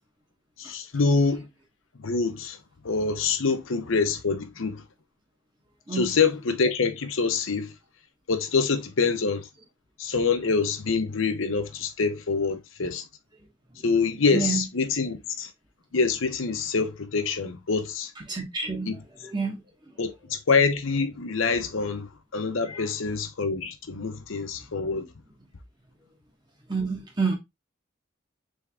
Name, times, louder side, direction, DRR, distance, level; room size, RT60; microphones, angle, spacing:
voice 1, 0.6-1.5 2.0-2.6 2.8-4.8 5.9-7.7 8.3-9.5 10.0-13.0 13.8-15.5 15.9-18.1 18.9-19.0 20.0-25.0, left 4 dB, 80° left, 0.8 m, -25 dB
voice 2, 5.9-6.2 13.7-13.9 14.3-14.6 18.3-18.9 19.2-19.6 22.7-22.9 26.7-27.4, right 4 dB, 20° right, 1.2 m, -29 dB
3.6 x 3.4 x 3.4 m
head